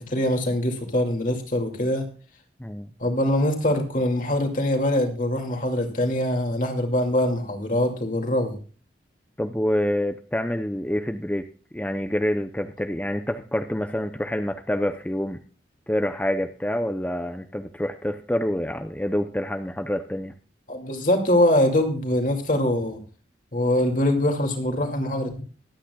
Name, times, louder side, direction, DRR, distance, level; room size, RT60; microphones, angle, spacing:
voice 1, 0.0-2.1 3.0-8.6 20.7-23.0 23.5-25.4, left 1 dB, 45° left, 3 dB, 2.4 m, -23 dB
voice 2, 2.6-2.9 9.4-11.5 11.7-15.4 15.9-20.3, left 1 dB, 10° left, 7 dB, 0.5 m, -27 dB
23.0 x 9.0 x 2.3 m, 0.38 s
head